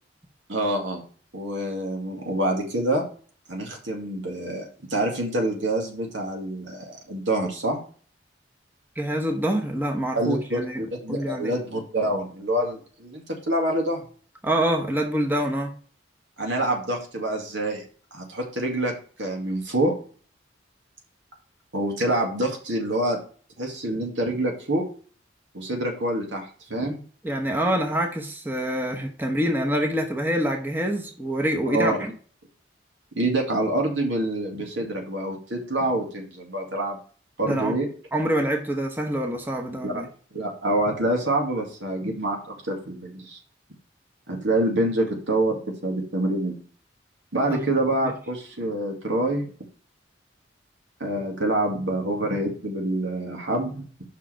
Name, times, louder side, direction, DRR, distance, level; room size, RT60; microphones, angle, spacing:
voice 1, 0.5-1.0 1.3-3.0 3.5-7.8 10.2-14.0 16.4-17.8 18.1-18.9 19.2-19.9 21.7-23.2 23.6-24.9 25.5-27.0 31.7-32.0 33.2-37.0 37.4-37.9 39.8-40.0 40.3-43.4 44.3-46.5 47.3-49.5 51.0-53.9, right 1 dB, 80° right, 1 dB, 2.1 m, -26 dB
voice 2, 9.0-11.6 14.4-15.7 27.2-32.1 37.4-37.7 38.1-40.1 47.4-47.6, right 1 dB, 10° right, 2 dB, 1.0 m, -26 dB
5.7 x 4.8 x 6.1 m, 0.43 s
head